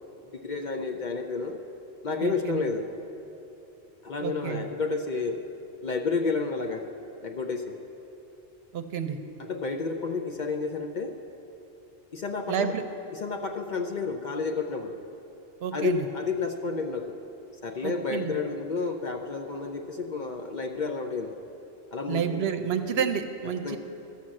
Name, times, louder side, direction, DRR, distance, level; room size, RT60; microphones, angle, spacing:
voice 1, 0.3-1.6 2.0-2.9 4.0-5.4 5.8-6.9 7.2-7.8 9.4-11.1 12.1-12.7 13.1-15.0 15.7-17.2 17.6-21.3 21.9-22.4 23.6-23.8, left 4 dB, 55° left, 4 dB, 0.6 m, -31 dB
voice 2, 2.2-2.7 4.2-4.6 8.7-9.2 12.5-12.8 15.6-16.1 17.8-18.3 22.1-23.8, right 7 dB, 70° right, 8 dB, 0.9 m, -29 dB
13.0 x 5.8 x 7.5 m, 2.9 s
omnidirectional pair, 1.1 m